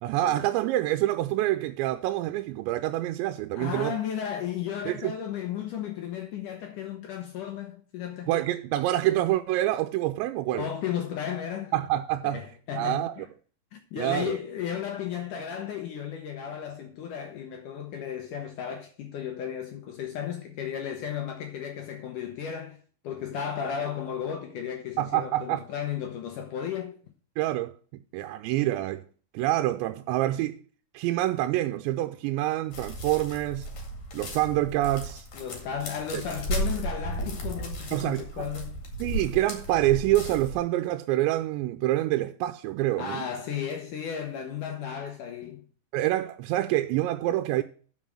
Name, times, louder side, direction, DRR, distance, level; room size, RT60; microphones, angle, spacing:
voice 1, 0.0-3.9 4.9-5.1 8.3-10.7 11.7-12.4 12.7-13.3 14.0-14.4 25.0-25.6 27.4-27.8 28.1-29.0 29.3-30.6 30.9-33.7 34.1-35.3 36.1-36.2 37.9-38.4 39.0-43.2 45.9-47.6, right 15 dB, 90° right, 2.9 m, -26 dB
voice 2, 3.6-8.3 10.5-11.7 12.2-13.2 13.7-22.8 23.0-27.0 35.3-38.8 43.0-45.6, left 8 dB, 80° left, 1.9 m, -34 dB
sound 1, 32.7-40.6, right 1 dB, 50° left, 2.9 m, -35 dB
7.4 x 6.4 x 7.5 m
omnidirectional pair, 5.0 m